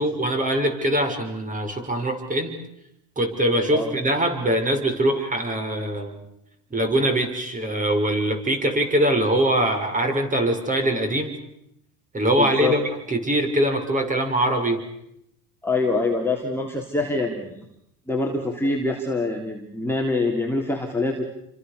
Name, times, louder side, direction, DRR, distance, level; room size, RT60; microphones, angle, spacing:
voice 1, 0.0-2.5 3.2-6.2 6.7-11.3 12.1-12.8 13.1-14.8, right 1 dB, 15° right, 5 dB, 6.4 m, -22 dB
voice 2, 12.4-12.8 15.6-17.7 18.1-21.3, left 2 dB, 5° left, -1 dB, 3.5 m, -25 dB
29.5 x 25.5 x 6.9 m, 0.79 s
supercardioid pair, 115°, 44 cm